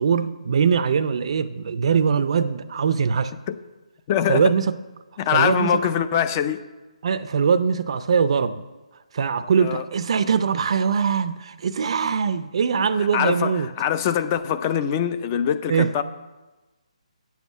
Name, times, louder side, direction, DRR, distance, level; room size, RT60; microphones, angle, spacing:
voice 1, 0.0-3.3 4.3-4.8 5.3-5.7 7.0-8.6 9.1-13.7 15.7-16.0, right 6 dB, 50° right, 0.5 m, -22 dB
voice 2, 4.1-4.4 5.2-6.6 9.6-9.8 13.0-16.0, left 9 dB, 25° left, 0.5 m, -23 dB
9.1 x 7.2 x 7.2 m
hypercardioid pair, 155°, 4 cm